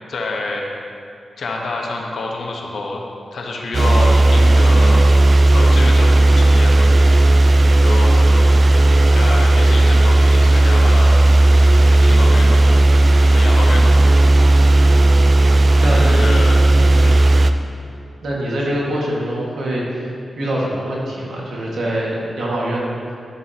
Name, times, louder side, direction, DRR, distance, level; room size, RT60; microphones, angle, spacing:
voice 1, 0.1-0.7 1.4-3.0 3.3-5.1 5.5-6.9 7.8-8.6 9.1-11.2 11.9-12.7 13.3-14.0 15.8-16.6 17.0-17.2, left 3 dB, 75° left, 0 dB, 1.1 m, -27 dB
sound 1, 3.7-17.5, right 2 dB, 50° right, 0.4 m, -12 dB
voice 2, 15.8-16.3 16.7-17.0 18.2-20.1 20.4-23.1, right 1 dB, 80° right, -4 dB, 1.8 m, -24 dB
12.0 x 7.2 x 2.9 m, 2.5 s
cardioid pair, 55°, 0 cm